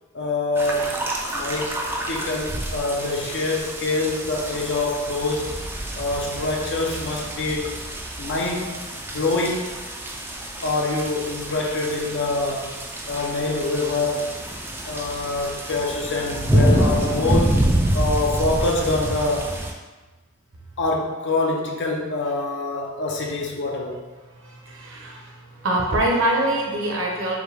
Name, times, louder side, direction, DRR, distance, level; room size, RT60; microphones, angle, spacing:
voice 1, 0.1-1.0 1.3-5.6 6.0-7.9 8.2-8.8 9.1-9.8 10.6-12.8 13.1-14.4 14.8-17.7 17.9-19.5 20.8-24.0, left 2 dB, 55° left, 0 dB, 0.6 m, -25 dB
sound 1, 0.6-19.7, right 1 dB, 10° right, 0.4 m, -27 dB
voice 2, 24.5-25.3 25.6-27.4, right 1 dB, 65° right, -1 dB, 0.9 m, -23 dB
5.0 x 2.3 x 3.3 m, 1.2 s
head